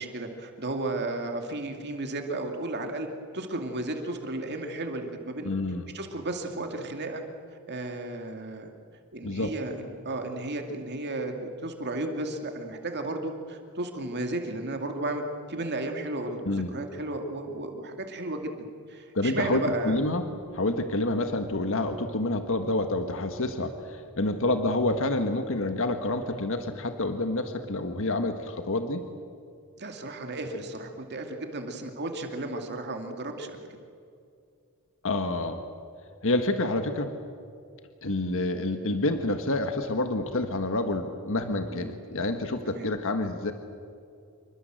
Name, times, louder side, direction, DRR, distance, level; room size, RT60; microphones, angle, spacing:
voice 1, 0.0-3.1 3.3-5.5 5.9-7.2 7.7-8.7 9.1-15.2 15.5-18.5 18.9-20.0 29.8-33.6 41.7-41.9 42.7-42.9, right 2 dB, 50° right, 4 dB, 2.5 m, -34 dB
voice 2, 5.4-5.8 9.2-9.5 16.4-16.7 19.1-20.2 20.5-29.0 35.0-35.6 36.2-37.1 38.0-43.5, left 2 dB, 65° left, 7 dB, 1.6 m, -28 dB
27.5 x 23.5 x 7.7 m, 2.4 s
head